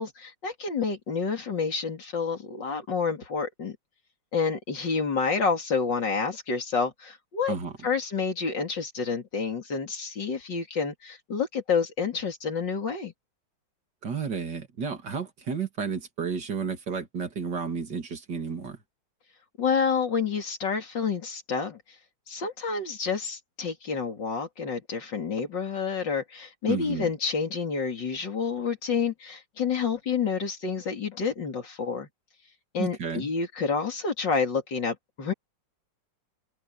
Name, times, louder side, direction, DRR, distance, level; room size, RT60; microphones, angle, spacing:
voice 1, 0.0-3.8 4.3-7.5 7.8-13.1 19.6-21.8 22.3-32.1 32.7-35.3, left 5 dB, 70° left, 3.6 m, -29 dB
voice 2, 14.0-18.8 26.7-27.1 32.8-33.3, right 6 dB, 65° right, 3.0 m, -32 dB
omnidirectional pair, 2.0 m